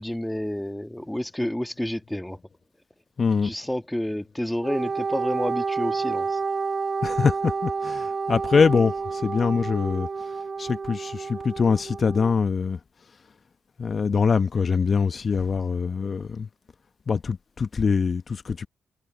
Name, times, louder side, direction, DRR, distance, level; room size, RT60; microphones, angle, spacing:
voice 1, 0.0-2.4 3.4-6.4, left 1 dB, 5° left, 2.4 m, -29 dB
voice 2, 3.2-3.5 7.0-12.8 13.8-16.5 17.1-18.7, left 5 dB, 45° left, 1.2 m, -24 dB
Wind instrument woodwind instrument, 4.6-12.3, right 5 dB, 45° right, 0.9 m, -29 dB
hypercardioid pair, 45°, 0 cm